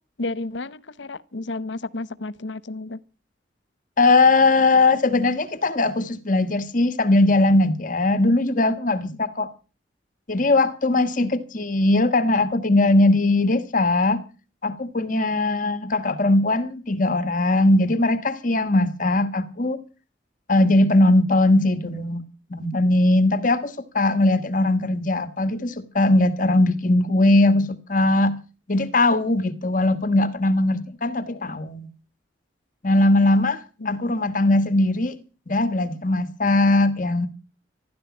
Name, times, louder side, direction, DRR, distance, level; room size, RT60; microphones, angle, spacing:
voice 1, 0.2-3.0 11.2-11.3 31.3-31.4 33.8-34.2, left 2 dB, 90° left, 0.9 m, -32 dB
voice 2, 4.0-9.5 10.3-14.2 14.6-19.8 20.5-22.2 22.5-28.4 28.7-31.9 32.8-35.2 35.5-37.3, left 2 dB, 50° left, 1.4 m, -20 dB
14.5 x 13.0 x 6.1 m
head